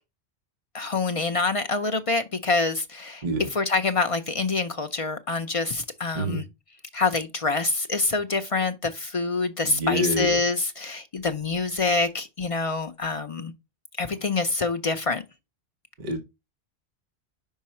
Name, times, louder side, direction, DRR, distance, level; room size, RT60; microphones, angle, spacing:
voice 1, 0.7-3.2 3.5-6.4 6.9-13.5 14.0-15.2, left 3 dB, 45° left, 0.4 m, -26 dB
voice 2, 9.6-10.4 16.0-16.2, equal, 45° right, 1.2 m, -27 dB
5.5 x 4.6 x 4.2 m
omnidirectional pair, 1.1 m